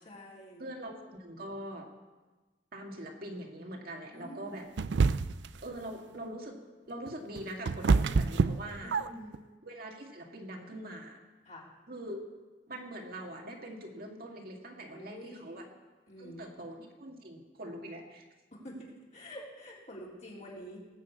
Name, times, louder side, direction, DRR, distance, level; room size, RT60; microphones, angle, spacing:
voice 1, 0.1-0.7 4.1-4.7 8.8-9.4 11.5-11.7 14.9-15.6 16.1-16.5 18.5-20.8, equal, 45° left, -5 dB, 3.6 m, -47 dB
voice 2, 0.6-1.9 2.7-4.6 5.6-6.6 6.9-9.0 9.6-11.2 11.9-12.2 12.7-15.7 16.2-18.2, right 1 dB, 55° right, 1 dB, 2.0 m, -43 dB
sound 1, 4.8-5.5 7.1-9.4, right 4 dB, 85° right, 0.4 m, -26 dB
18.5 x 6.5 x 8.3 m, 1.3 s
head